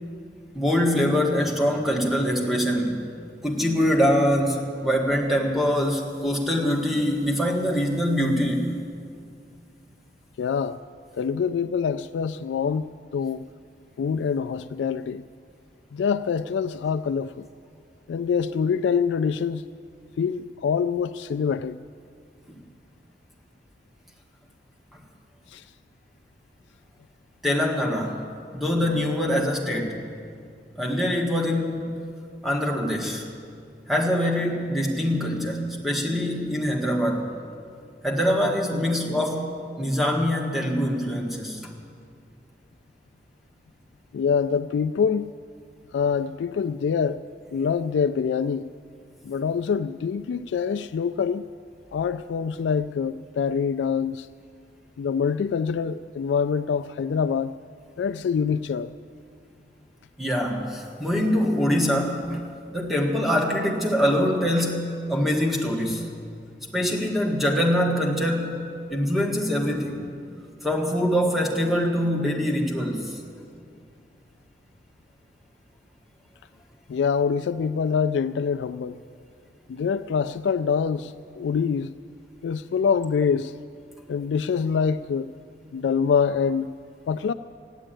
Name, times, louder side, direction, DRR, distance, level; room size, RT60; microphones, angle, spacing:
voice 1, 0.5-3.0 3.4-8.7 24.9-25.0 27.4-28.2 28.5-30.0 30.8-31.9 32.4-33.3 33.9-37.4 38.0-41.6 60.2-62.4 62.7-66.1 66.7-68.6 68.9-70.1 70.6-73.2, equal, ahead, 1.5 m, -24 dB
voice 2, 10.4-10.8 11.2-13.4 14.0-15.2 15.9-17.5 18.1-19.6 20.2-21.8 25.5-25.6 44.1-45.3 45.9-47.2 47.5-48.7 49.2-51.5 51.9-54.3 55.0-57.5 58.0-58.9 76.9-79.0 79.7-81.9 82.4-83.5 84.1-85.3 85.7-86.7 87.1-87.3, left 6 dB, 85° left, 0.3 m, -25 dB
15.0 x 10.0 x 9.0 m
head